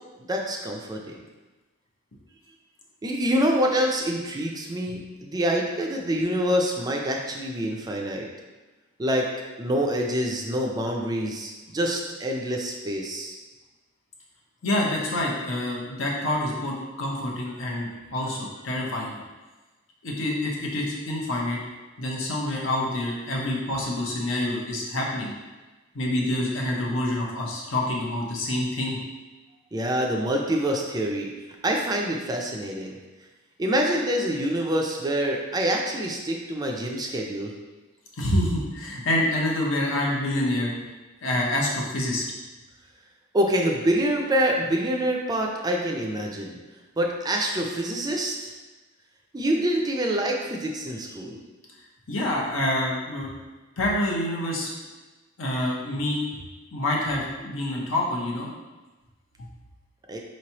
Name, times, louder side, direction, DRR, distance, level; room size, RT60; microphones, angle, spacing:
voice 1, 0.2-1.2 3.0-8.3 9.0-9.3 9.6-13.4 29.7-31.3 31.6-32.9 33.6-37.5 43.3-46.5 47.0-48.5 49.3-51.4 60.1-60.2, equal, 20° right, 0 dB, 0.4 m, -26 dB
voice 2, 14.6-19.1 20.0-21.6 22.0-25.3 25.9-29.0 38.2-40.7 41.2-42.2 52.1-53.3 53.8-54.7 55.4-56.2 56.7-58.5 59.4-59.5, left 1 dB, 80° left, -2 dB, 0.9 m, -27 dB
4.4 x 3.1 x 2.9 m, 1.2 s
head